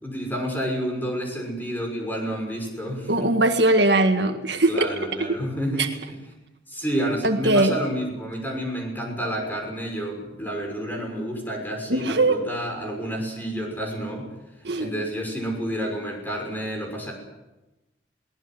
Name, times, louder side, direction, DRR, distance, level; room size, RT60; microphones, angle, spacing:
voice 1, 0.0-3.3 4.7-6.2 6.7-14.3 14.8-17.1, equal, 10° left, 1 dB, 6.1 m, -29 dB
voice 2, 3.1-4.9 5.8-5.9 7.2-7.8 11.9-12.4 14.6-14.9, right 2 dB, 70° right, 6 dB, 1.8 m, -20 dB
22.5 x 18.5 x 7.8 m, 1.0 s
head